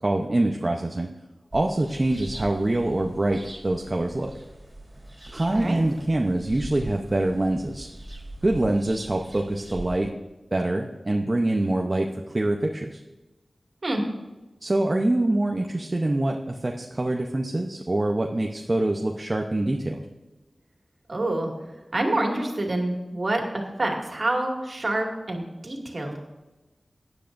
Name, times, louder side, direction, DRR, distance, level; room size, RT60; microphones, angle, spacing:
voice 1, 0.0-1.1 1.5-4.3 5.3-7.9 8.4-10.1 10.5-13.0 14.6-20.0, right 1 dB, 40° right, 2 dB, 0.8 m, -25 dB
sound 1, 1.5-10.1, right 1 dB, 25° right, 3.7 m, -41 dB
voice 2, 5.5-5.8 13.8-14.0 21.1-21.5 21.9-23.4 23.8-26.2, right 1 dB, 60° right, 0 dB, 2.3 m, -27 dB
16.5 x 10.0 x 2.6 m, 1.1 s
cardioid pair, 45°, 0 cm